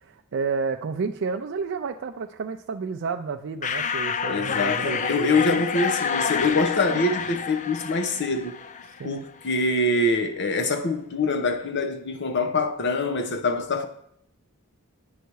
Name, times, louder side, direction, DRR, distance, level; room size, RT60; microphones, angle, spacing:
voice 1, 0.0-5.6 6.9-7.1 9.0-9.2, right 5 dB, 55° right, 0.4 m, -31 dB
sound 1, 3.6-9.1, left 6 dB, 35° left, 0.4 m, -28 dB
voice 2, 4.3-8.6 9.0-13.9, left 2 dB, 50° left, 0.9 m, -24 dB
9.2 x 5.6 x 4.7 m
head